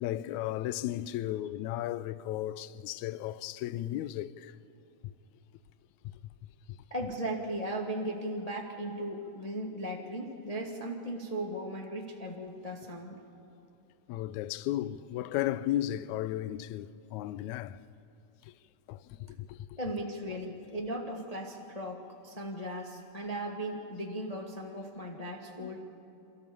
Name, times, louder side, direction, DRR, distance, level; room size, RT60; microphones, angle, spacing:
voice 1, 0.0-4.5 14.1-17.8 18.9-19.6 25.6-25.8, left 13 dB, 75° left, 1.9 m, -34 dB
voice 2, 6.9-13.2 19.8-25.8, right 1 dB, 20° left, 1.0 m, -37 dB
28.5 x 14.0 x 7.0 m
omnidirectional pair, 3.6 m